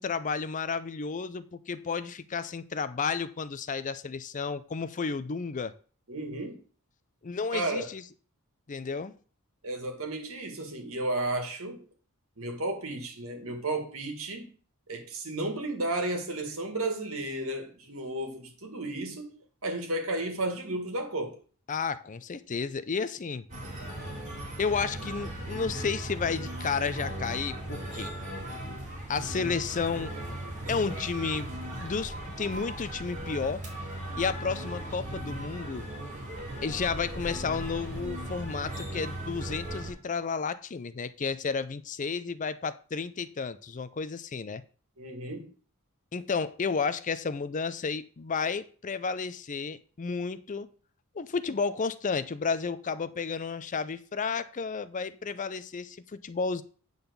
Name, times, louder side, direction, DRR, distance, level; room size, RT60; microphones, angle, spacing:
voice 1, 0.0-5.8 7.2-8.0 8.7-9.1 21.7-23.5 24.6-28.1 29.1-30.1 30.7-31.5 31.8-33.7 34.2-35.9 36.6-44.6 46.1-50.7 51.1-56.6, left 5 dB, 35° left, 0.5 m, -32 dB
voice 2, 6.1-6.6 7.5-7.9 9.6-11.9 12.4-14.5 14.9-19.3 19.6-21.4 45.0-45.5, right 2 dB, 70° right, 2.0 m, -33 dB
sound 1, 23.5-39.9, right 1 dB, 35° right, 3.5 m, -37 dB
8.8 x 4.0 x 6.8 m
head